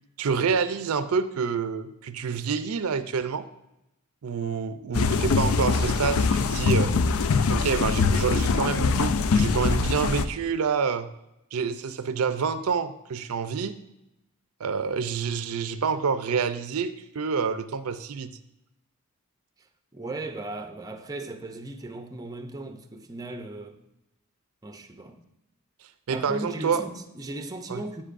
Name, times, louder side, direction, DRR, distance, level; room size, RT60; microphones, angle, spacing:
voice 1, 0.2-3.5 4.2-6.9 7.5-11.1 11.5-13.8 14.6-18.3 26.1-26.8 27.7-27.8, right 6 dB, 80° right, 0.5 m, -27 dB
sound 1, 4.9-10.2, left 4 dB, 70° left, 0.4 m, -23 dB
voice 2, 19.9-23.8 24.6-25.2 26.1-28.0, right 2 dB, 15° right, 0.5 m, -37 dB
9.9 x 8.8 x 2.5 m
head